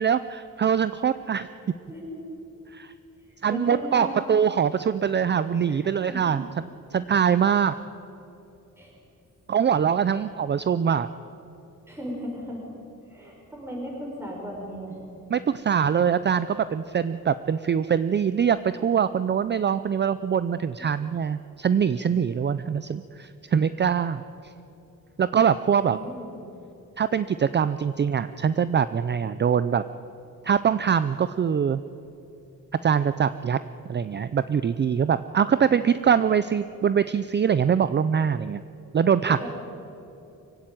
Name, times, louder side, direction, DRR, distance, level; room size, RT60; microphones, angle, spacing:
voice 1, 0.0-1.5 2.7-2.9 3.4-6.5 6.9-7.8 9.5-11.1 15.3-24.2 25.2-26.0 27.0-29.8 30.4-31.8 32.8-33.6 33.9-38.6 38.9-39.5, right 7 dB, 35° right, 14 dB, 0.5 m, -23 dB
voice 2, 3.5-4.1 5.7-5.8 6.1-6.2 8.8-8.9 10.1-10.2 11.9-12.6 13.0-15.0 22.0-22.1 25.8-26.4 39.3-39.5, equal, 5° right, -3 dB, 5.9 m, -36 dB
24.0 x 16.0 x 9.3 m, 2.8 s
wide cardioid pair, 160°, 34 cm